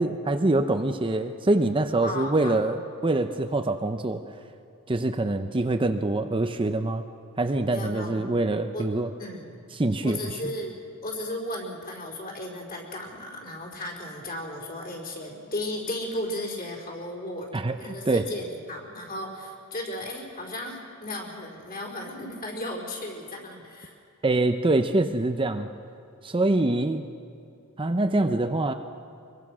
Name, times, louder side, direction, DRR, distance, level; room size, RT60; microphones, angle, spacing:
voice 1, 0.0-2.8 3.0-4.2 4.9-7.0 7.4-9.1 9.7-10.4 17.5-18.3 24.2-25.7 26.2-27.1 27.8-28.7, right 2 dB, 25° right, 6 dB, 0.7 m, -25 dB
voice 2, 2.0-2.8 7.7-8.3 8.7-8.9 9.2-9.5 10.0-17.5 17.8-24.0, left 1 dB, 40° left, -2 dB, 4.6 m, -35 dB
24.0 x 22.5 x 6.2 m, 2.6 s
head